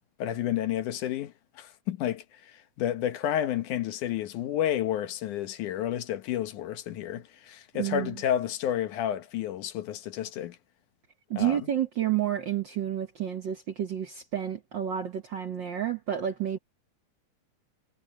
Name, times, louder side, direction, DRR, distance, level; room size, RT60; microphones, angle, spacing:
voice 1, 0.2-10.6 11.4-11.7, left 11 dB, 75° left, 2.6 m, -31 dB
voice 2, 7.7-8.1 11.3-16.6, right 10 dB, 70° right, 1.1 m, -30 dB
omnidirectional pair, 3.7 m